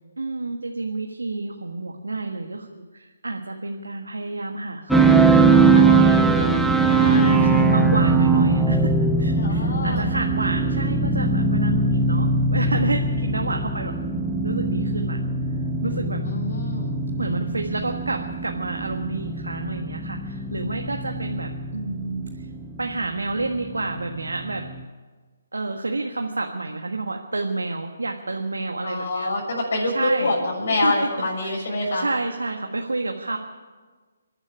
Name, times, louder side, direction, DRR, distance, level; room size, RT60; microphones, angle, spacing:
voice 1, 0.2-6.8 7.3-8.9 9.2-15.2 15.5-16.2 17.2-22.5 22.8-24.7 25.5-29.3 29.9-30.3 30.8-31.7 31.9-33.4, right 2 dB, 80° right, 3 dB, 1.5 m, -30 dB
sound 1, 4.9-24.8, right 3 dB, ahead, 0.9 m, -21 dB
voice 2, 6.9-7.7 9.4-10.1 16.2-17.0 28.8-32.1, left 2 dB, 60° left, -3 dB, 6.9 m, -26 dB
26.5 x 11.0 x 9.9 m, 1.4 s
figure-of-eight pair, 140°, 0 cm